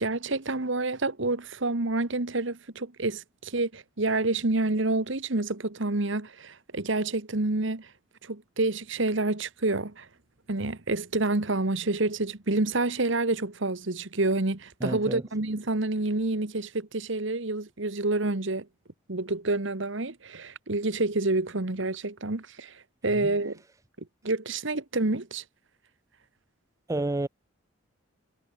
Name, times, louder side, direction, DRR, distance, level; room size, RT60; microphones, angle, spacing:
voice 1, 0.0-7.9 8.2-10.1 10.5-18.7 19.1-23.6 24.2-25.4, right 2 dB, 60° right, 1.4 m, -28 dB
voice 2, 14.8-15.2 23.2-23.3 26.9-27.3, right 2 dB, 15° right, 0.3 m, -30 dB
head